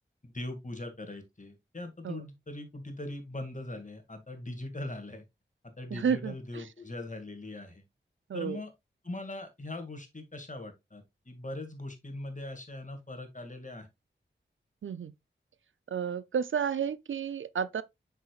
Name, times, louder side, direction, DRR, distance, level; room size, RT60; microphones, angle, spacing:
voice 1, 0.2-5.2 5.6-7.8 8.3-8.7 9.0-13.9, left 2 dB, 40° left, 2.1 m, -41 dB
voice 2, 5.9-6.6 8.3-8.6 14.8-15.1 15.9-17.8, right 7 dB, 75° right, 0.5 m, -31 dB
7.8 x 6.0 x 2.4 m
cardioid pair, 45°, 20 cm